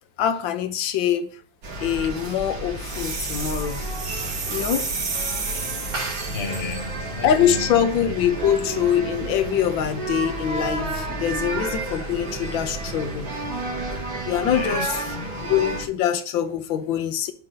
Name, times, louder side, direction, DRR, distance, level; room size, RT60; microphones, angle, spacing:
voice 1, 0.2-1.3 1.8-3.8 4.5-4.9 7.2-13.3 14.2-14.9 15.4-17.3, left 9 dB, 75° left, 1.6 m, -24 dB
sound 1, 1.6-15.9, right 2 dB, 90° right, 3.1 m, -31 dB
sound 2, 2.8-6.5, right 4 dB, 40° right, 1.3 m, -31 dB
voice 2, 6.3-7.7 8.0-8.1 14.5-15.5, left 4 dB, 45° left, 0.9 m, -33 dB
8.5 x 3.9 x 6.4 m
omnidirectional pair, 2.2 m